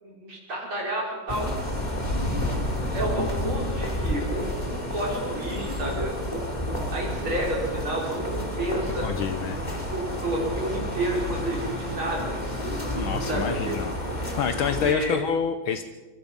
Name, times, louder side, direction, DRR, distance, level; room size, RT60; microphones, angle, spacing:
voice 1, 0.0-1.5 2.9-6.5 6.9-9.1 9.9-12.4 13.3-13.7 14.6-15.2, right 1 dB, 75° right, -3 dB, 6.4 m, -30 dB
sound 1, 1.3-14.9, left 1 dB, 20° left, 3.2 m, -30 dB
sound 2, 6.6-13.7, right 1 dB, 45° right, 3.7 m, -45 dB
voice 2, 9.0-9.6 12.9-13.9 14.4-15.8, left 7 dB, 75° left, 8 dB, 1.8 m, -27 dB
26.0 x 24.0 x 5.5 m, 1.2 s
omnidirectional pair, 2.3 m